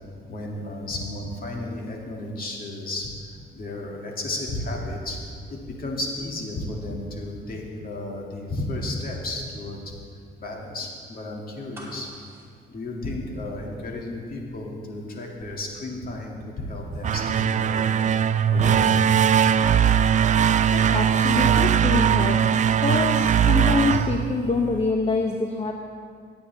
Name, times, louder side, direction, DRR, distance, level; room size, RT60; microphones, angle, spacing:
voice 1, 0.3-3.1 3.5-5.2 5.5-9.8 10.4-12.1 12.7-17.9 18.5-18.8, left 1 dB, 50° left, -1 dB, 2.2 m, -33 dB
sound 1, 11.7-13.8 14.1-14.2, right 1 dB, 10° right, 2.8 m, -47 dB
sound 2, 16.9-24.9, right 8 dB, 40° right, 0.4 m, -20 dB
voice 2, 20.7-22.5 22.8-25.7, left 3 dB, 30° left, 2 dB, 0.8 m, -25 dB
17.5 x 8.6 x 3.4 m, 2.2 s
cardioid pair, 90°, 20 cm